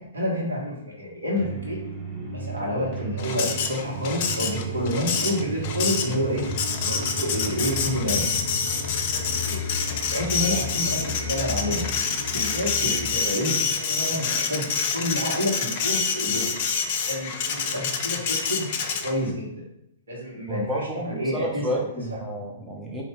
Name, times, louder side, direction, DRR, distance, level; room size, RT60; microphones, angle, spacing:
voice 1, 0.0-1.8 2.3-6.5 6.8-8.3 9.1-9.6 9.8-11.8 12.3-16.5 17.1-18.7 19.0-19.5 20.1-21.7, equal, 70° right, -3 dB, 1.5 m, -29 dB
sound 1, 1.3-13.2, equal, 45° right, 1.6 m, -34 dB
Printer, 3.2-19.3, left 6 dB, 40° left, 0.5 m, -27 dB
voice 2, 20.5-23.0, right 1 dB, 10° right, -2 dB, 0.7 m, -30 dB
4.2 x 2.7 x 3.5 m, 0.81 s
figure-of-eight pair, 110°, 0 cm